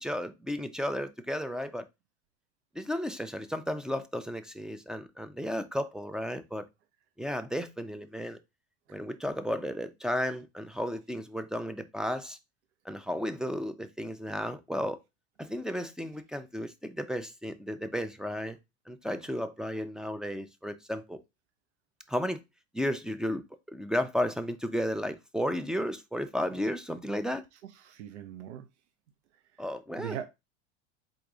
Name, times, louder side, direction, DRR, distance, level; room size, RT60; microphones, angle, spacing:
voice 1, 0.0-1.9 2.7-6.7 7.2-8.4 8.9-12.4 12.8-15.0 15.4-18.6 18.9-21.2 22.1-22.4 22.7-23.4 23.7-27.4 29.6-30.2, equal, ahead, 0.5 m, -33 dB
voice 2, 27.5-28.7 29.5-29.6 30.0-30.3, right 10 dB, 80° right, 0.7 m, -41 dB
4.0 x 3.4 x 3.8 m
hypercardioid pair, 90°, 34 cm